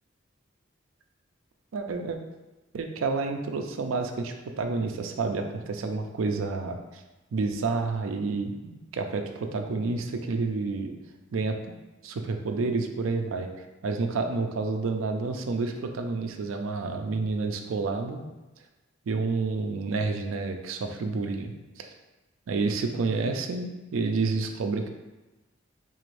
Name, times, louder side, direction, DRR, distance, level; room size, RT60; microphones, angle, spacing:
voice 1, 1.7-2.2 2.7-7.0 7.3-10.9 11.3-11.6 12.0-13.5 13.8-18.2 19.1-21.9 22.5-24.9, right 3 dB, 85° right, 5 dB, 0.4 m, -29 dB
3.8 x 2.5 x 3.2 m, 1.1 s
head